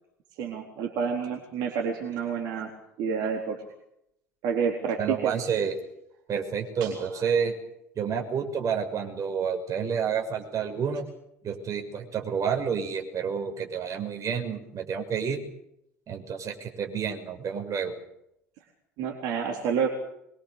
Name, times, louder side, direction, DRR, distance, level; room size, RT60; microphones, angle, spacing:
voice 1, 0.4-2.7 3.0-3.6 4.4-5.3 6.8-7.1 19.0-19.9, right 6 dB, 60° right, 1 dB, 3.9 m, -29 dB
voice 2, 5.0-5.7 6.3-7.5 8.0-11.0 11.4-15.4 16.1-17.9, right 7 dB, 45° right, 4 dB, 6.2 m, -29 dB
24.5 x 22.5 x 6.8 m, 0.78 s
hypercardioid pair, 65°, 8 cm